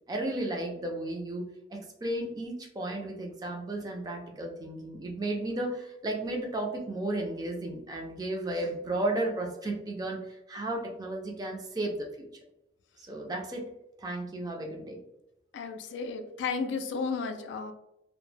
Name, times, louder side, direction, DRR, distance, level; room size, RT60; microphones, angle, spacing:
voice 1, 0.1-12.3 13.0-13.7 14.0-15.0, right 1 dB, 20° right, 1 dB, 0.4 m, -34 dB
voice 2, 15.5-17.7, left 5 dB, 75° left, 8 dB, 0.3 m, -33 dB
2.1 x 2.0 x 3.1 m, 0.83 s
head